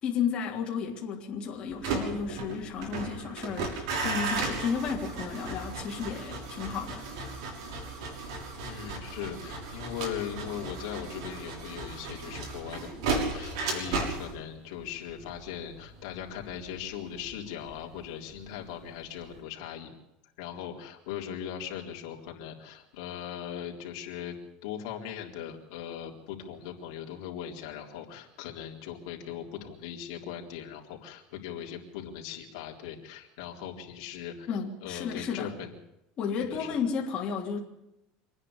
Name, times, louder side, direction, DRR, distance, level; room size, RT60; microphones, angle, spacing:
voice 1, 0.0-7.1 34.5-35.5 36.2-37.6, left 6 dB, 35° left, 3.3 m, -33 dB
sound 1, 1.7-18.7 19.0-19.4, right 3 dB, 85° right, 6.4 m, -35 dB
voice 2, 8.6-19.9 20.4-24.4 24.6-35.7 36.5-36.8, left 9 dB, 80° left, 3.9 m, -39 dB
26.5 x 10.0 x 9.7 m
cardioid pair, 145°, 3 cm